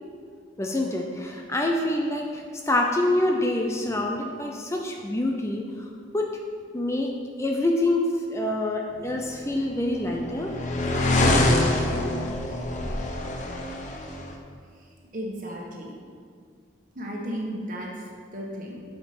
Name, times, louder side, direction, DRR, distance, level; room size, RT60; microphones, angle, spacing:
voice 1, 0.6-5.9 6.1-6.3 6.7-7.1 7.4-10.5 11.1-11.5, left 1 dB, 15° left, 1 dB, 0.5 m, -26 dB
sound 1, 9.4-14.3, left 1 dB, 40° left, 0.8 m, -25 dB
voice 2, 15.1-15.9 16.9-18.0 18.3-18.8, equal, 45° right, -2 dB, 1.5 m, -34 dB
8.1 x 5.1 x 6.0 m, 2.1 s
head